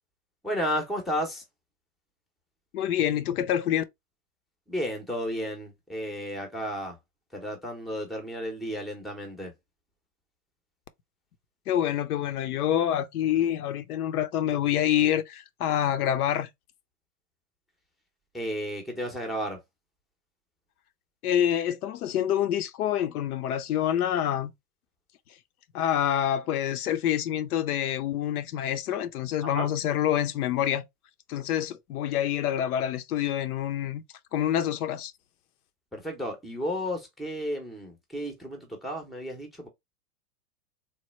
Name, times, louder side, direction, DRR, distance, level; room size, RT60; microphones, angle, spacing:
voice 1, 0.4-1.4 4.7-7.0 7.3-9.5 18.3-19.6 29.4-29.7 35.9-39.7, equal, ahead, 0.5 m, -33 dB
voice 2, 2.7-3.8 11.7-16.5 21.2-24.5 25.7-30.8 31.3-34.0 34.3-35.1, left 10 dB, 75° left, 0.6 m, -27 dB
3.2 x 2.1 x 3.0 m
hypercardioid pair, 115°, 45 cm